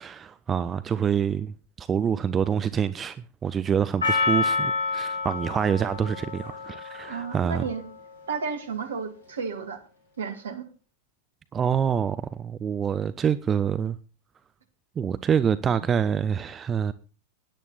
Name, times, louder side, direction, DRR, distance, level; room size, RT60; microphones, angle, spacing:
voice 1, 0.0-3.2 3.4-7.6 11.5-14.0 15.0-16.9, right 7 dB, 20° right, 0.6 m, -26 dB
Percussion, 4.0-8.3, left 4 dB, 90° right, 6.1 m, -29 dB
voice 2, 7.1-7.8 8.3-9.8 10.2-10.7, right 5 dB, 70° right, 2.4 m, -32 dB
17.0 x 10.5 x 4.1 m
figure-of-eight pair, 90°, 0 cm